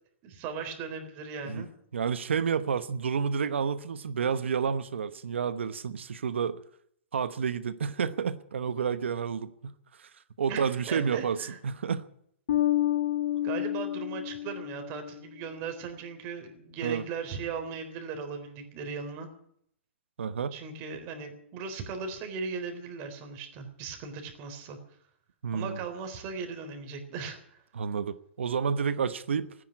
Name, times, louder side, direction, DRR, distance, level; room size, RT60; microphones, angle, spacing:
voice 1, 0.2-1.7 10.5-11.6 13.4-19.3 20.5-24.8 25.5-27.6, right 5 dB, 35° right, 5 dB, 3.9 m, -38 dB
voice 2, 1.9-6.6 7.1-9.7 10.0-10.1 10.4-12.0 16.8-17.0 20.2-20.6 25.4-25.8 27.7-29.5, right 6 dB, 85° right, 13 dB, 1.0 m, -30 dB
Bass guitar, 12.5-15.1, left 13 dB, 70° left, 1.0 m, -29 dB
14.5 x 10.0 x 9.8 m, 0.68 s
hypercardioid pair, 135°, 6 cm